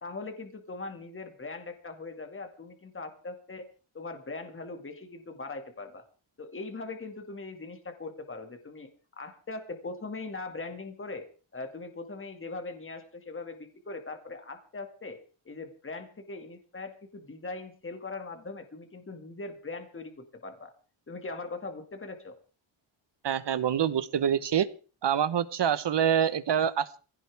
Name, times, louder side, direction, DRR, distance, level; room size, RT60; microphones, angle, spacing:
voice 1, 0.0-3.7 3.9-6.0 6.4-11.3 11.5-15.2 15.5-20.7 21.1-22.4, left 3 dB, 25° left, 6 dB, 2.2 m, -40 dB
voice 2, 23.2-24.7 25.0-27.0, right 9 dB, 60° right, 15 dB, 1.2 m, -26 dB
22.5 x 16.0 x 3.5 m, 0.37 s
wide cardioid pair, 150°, 48 cm